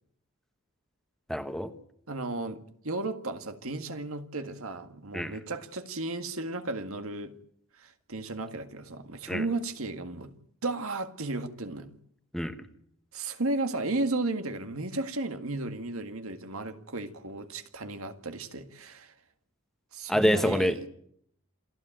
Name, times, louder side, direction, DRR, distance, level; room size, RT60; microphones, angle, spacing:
voice 1, 1.3-1.7 5.1-5.4 9.3-9.4 12.3-12.6 20.1-20.9, equal, ahead, 1.2 m, -26 dB
voice 2, 2.1-7.3 7.8-10.3 10.6-11.9 13.1-19.1 19.9-20.7, right 2 dB, 75° right, 1.8 m, -34 dB
27.5 x 14.0 x 9.0 m
head